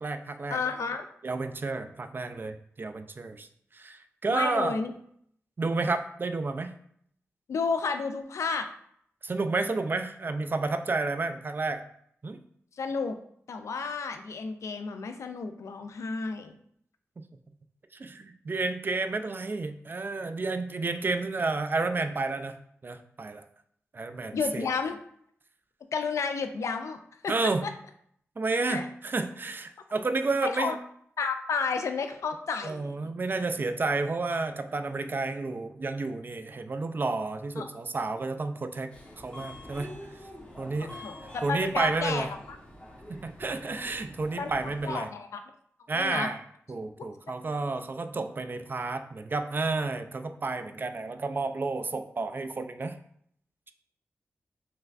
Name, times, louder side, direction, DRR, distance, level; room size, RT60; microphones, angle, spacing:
voice 1, 0.0-0.6 1.2-3.5 3.7-4.8 5.6-6.7 9.2-11.8 12.2-12.4 18.0-22.6 22.8-23.4 23.9-24.7 27.3-27.6 28.4-30.7 32.6-39.9 40.6-41.0 41.4-42.3 43.1-45.1 45.9-46.4 46.7-52.9, right 3 dB, 40° right, 8 dB, 0.3 m, -31 dB
voice 2, 0.5-1.1 4.3-4.9 7.5-8.7 12.7-13.2 13.5-16.5 24.3-25.0 25.9-27.7 28.7-28.9 30.4-30.8 31.2-33.1 37.6-37.7 40.8-42.6 44.4-44.5 44.8-45.4 45.9-46.3 47.3-47.4, left 5 dB, 75° left, 8 dB, 0.3 m, -32 dB
Subway metro underground, 38.9-44.9, left 1 dB, 20° left, 1.1 m, -46 dB
3.3 x 3.1 x 2.4 m, 0.66 s
cardioid pair, 50°, 5 cm